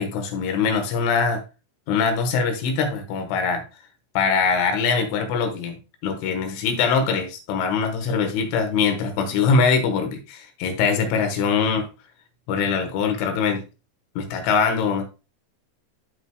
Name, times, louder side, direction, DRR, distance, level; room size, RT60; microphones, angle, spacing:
voice 1, 0.0-1.4 1.9-3.6 4.2-5.8 6.0-11.9 12.5-13.6 14.2-15.1, left 5 dB, 85° left, 5 dB, 3.9 m, -22 dB
14.5 x 4.8 x 2.3 m, 0.29 s
omnidirectional pair, 5.5 m